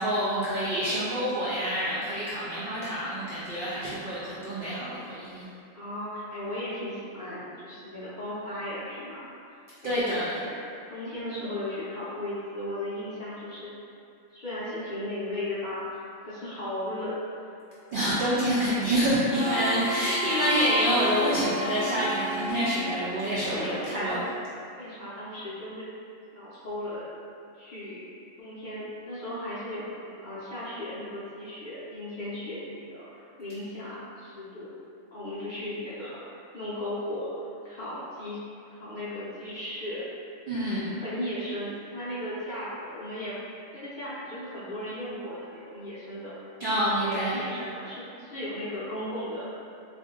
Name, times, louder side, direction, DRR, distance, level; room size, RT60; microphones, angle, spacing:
voice 1, 0.0-5.5 9.8-10.4 17.9-24.2 40.5-41.0 46.6-47.3, equal, 60° right, -10 dB, 0.5 m, -27 dB
voice 2, 5.8-10.6 10.9-13.7 14.3-17.2 19.3-19.5 23.5-24.3 24.8-25.9 26.3-27.1 27.5-28.0 28.4-34.7 35.1-37.3 37.6-38.4 38.7-40.0 40.6-43.4 43.7-49.5, left 1 dB, 50° left, -11 dB, 0.6 m, -36 dB
Harmonica, 19.3-23.8, equal, 20° left, 0.9 m, -32 dB
2.5 x 2.5 x 3.6 m, 2.5 s
omnidirectional pair, 1.4 m